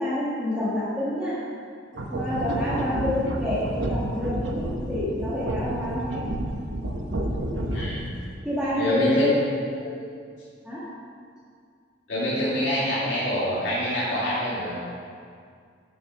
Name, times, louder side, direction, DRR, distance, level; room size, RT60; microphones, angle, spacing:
voice 1, 0.0-1.4 2.1-6.3 8.4-10.0 10.6-10.9 13.0-13.2, left 1 dB, 5° right, -10 dB, 1.4 m, -28 dB
sound 1, 1.9-8.1, right 1 dB, 90° right, 0.9 m, -30 dB
voice 2, 7.7-8.1 8.8-9.3 12.1-14.8, equal, 90° left, -10 dB, 2.3 m, -26 dB
7.5 x 6.9 x 5.5 m, 2.1 s
head